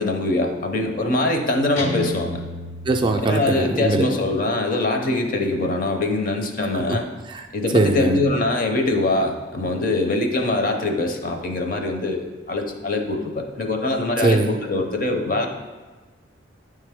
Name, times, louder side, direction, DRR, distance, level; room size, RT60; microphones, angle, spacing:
voice 1, 0.0-2.4 3.2-7.0 7.5-15.5, left 2 dB, 45° left, 4 dB, 0.7 m, -23 dB
Guitar, 1.8-3.8, right 1 dB, 80° left, 0.9 m, -33 dB
voice 2, 2.9-4.1 7.3-7.4 7.7-8.2 14.2-14.5, right 2 dB, 25° right, 4 dB, 0.4 m, -20 dB
9.4 x 3.3 x 3.6 m, 1.3 s
head